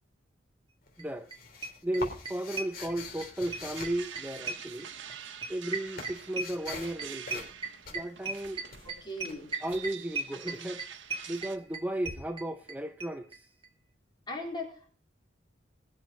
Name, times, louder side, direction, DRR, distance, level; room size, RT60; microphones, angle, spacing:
sound 1, 0.9-4.7 5.4-7.0 7.2-7.6 7.8-9.8 12.0-12.1, left 3 dB, 50° left, 3.4 m, -44 dB
voice 1, 1.0-1.3 1.8-4.9 5.5-7.5 7.9-8.6 9.6-10.8 11.3-13.5, right 1 dB, 10° right, 0.5 m, -35 dB
sound 2, 1.0-1.1 1.3-1.4 1.6-3.3 3.5-12.7 13.0-13.1 13.3-13.4 13.6-13.7, right 3 dB, 25° right, 2.4 m, -36 dB
sound 3, 3.4-11.6, right 8 dB, 70° right, 1.3 m, -47 dB
voice 2, 8.8-9.5 14.3-14.9, left 1 dB, 25° left, 3.8 m, -38 dB
20.0 x 7.4 x 5.1 m
head